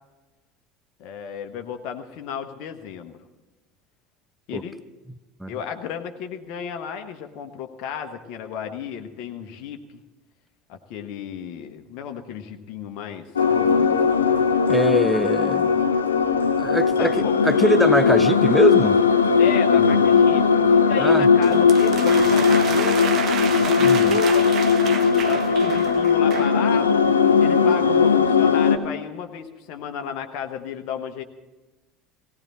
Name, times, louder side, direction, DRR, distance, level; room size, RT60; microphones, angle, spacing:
voice 1, 1.0-3.1 4.5-4.8 5.5-9.8 10.7-13.3 13.6-14.0 17.0-17.3 19.4-20.5 20.9-23.1 23.6-24.5 25.2-27.0 27.4-31.2, left 7 dB, 55° left, 1.2 m, -33 dB
sound 1, 13.4-28.8, left 5 dB, 80° left, 0.7 m, -18 dB
voice 2, 14.7-15.7 16.6-17.1 17.4-19.0 19.8-20.0 21.0-21.3 23.8-24.1, right 1 dB, 5° right, 0.6 m, -22 dB
sound 2, 21.4-26.6, right 7 dB, 45° right, 1.3 m, -31 dB
18.0 x 17.5 x 4.2 m
figure-of-eight pair, 70°, 0 cm